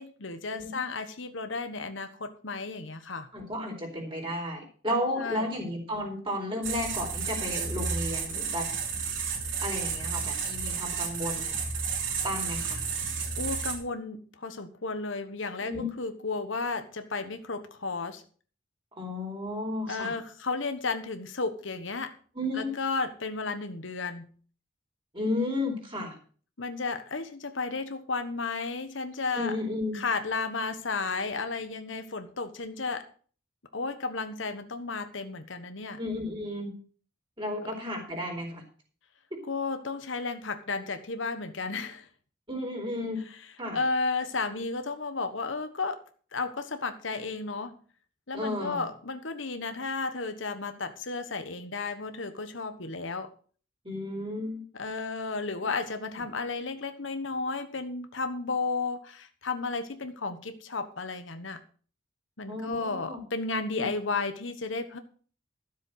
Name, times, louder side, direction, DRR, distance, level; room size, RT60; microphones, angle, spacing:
voice 1, 0.0-3.3 5.2-5.5 13.4-18.2 19.9-22.1 22.5-24.3 26.6-29.6 29.9-33.0 33.7-36.0 39.5-42.1 43.7-46.0 46.3-47.7 48.3-53.3 54.7-61.6 62.4-65.0, left 4 dB, 75° left, 9 dB, 1.3 m, -33 dB
voice 2, 3.3-8.7 9.6-11.6 12.2-12.8 15.6-15.9 19.0-20.1 22.3-22.7 25.1-26.2 29.3-30.0 36.0-36.7 37.4-38.6 39.3-39.4 42.5-43.2 43.6-43.8 48.3-48.8 53.8-54.7 62.5-63.2 63.8-63.9, left 1 dB, 25° right, 1 dB, 4.4 m, -33 dB
sound 1, 6.6-13.8, right 5 dB, 75° right, 3.3 m, -32 dB
13.0 x 7.5 x 6.3 m, 0.42 s
head